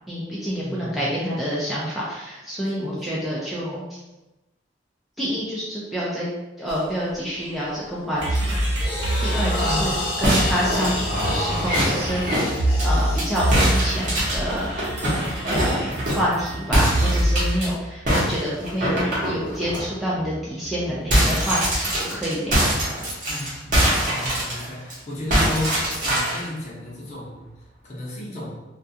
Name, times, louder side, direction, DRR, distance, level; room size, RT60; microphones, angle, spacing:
voice 1, 0.1-4.0 5.2-6.3 6.6-8.6 9.2-12.5 12.8-14.7 15.4-22.7, equal, ahead, -8 dB, 0.4 m, -28 dB
voice 2, 0.6-1.1 2.8-3.2 9.6-10.0 23.3-25.7 26.0-27.5 27.8-28.6, left 1 dB, 40° left, -5 dB, 0.7 m, -33 dB
sound 1, 6.7-6.9 7.4-7.7 8.2-16.3, left 1 dB, 65° left, 0.9 m, -30 dB
sound 2, 8.2-17.6, right 1 dB, 85° right, 0.9 m, -26 dB
sound 3, 10.2-13.3 13.5-16.3 16.7-17.7 18.1-19.8 20.2-20.4 20.7-24.9 25.3-26.5, equal, 45° right, 0.9 m, -23 dB
2.3 x 2.3 x 2.7 m, 1.0 s
head